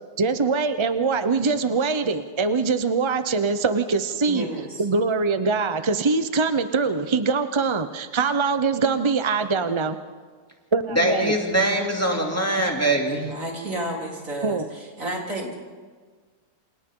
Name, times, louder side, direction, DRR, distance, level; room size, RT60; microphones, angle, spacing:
voice 1, 0.2-4.5 4.8-10.0 10.7-11.3 12.6-12.7 14.4-14.6, right 4 dB, 35° right, 9 dB, 0.4 m, -23 dB
voice 2, 4.3-4.9 13.1-15.5, right 1 dB, 55° right, -2 dB, 4.2 m, -32 dB
voice 3, 10.9-13.3, right 1 dB, 10° left, 0 dB, 2.7 m, -22 dB
28.0 x 28.0 x 3.8 m, 1.5 s
omnidirectional pair, 1.6 m